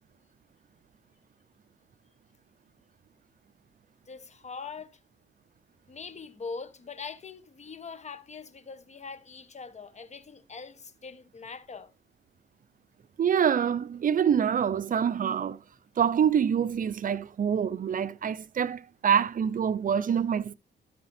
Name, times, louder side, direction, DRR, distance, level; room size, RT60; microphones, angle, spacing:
voice 1, 4.1-4.9 5.9-11.9, left 5 dB, 35° left, 1.3 m, -42 dB
voice 2, 13.2-15.6 16.0-20.5, right 8 dB, 45° right, 0.6 m, -26 dB
13.5 x 5.7 x 3.5 m
cardioid pair, 90°, 20 cm